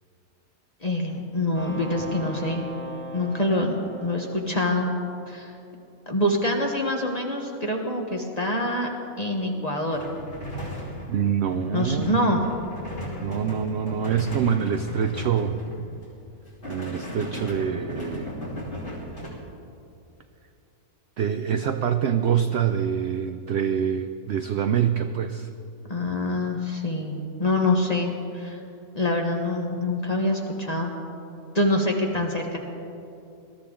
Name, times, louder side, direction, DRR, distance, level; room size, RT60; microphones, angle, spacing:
voice 1, 0.8-2.7 3.1-4.9 5.3-5.5 6.1-8.9 9.2-10.0 11.7-12.4 25.9-28.6 28.9-30.9 31.5-32.6, left 1 dB, 30° left, 1 dB, 1.1 m, -25 dB
sound 1, 1.5-5.3, left 1 dB, 10° left, 0.9 m, -40 dB
sound 2, 9.9-16.0 16.4-19.3, equal, 50° left, 3.4 m, -36 dB
voice 2, 11.1-12.3 13.2-15.6 16.7-18.3 21.2-25.5, right 8 dB, 65° right, 8 dB, 0.7 m, -25 dB
20.5 x 13.5 x 3.8 m, 2.6 s
omnidirectional pair, 1.6 m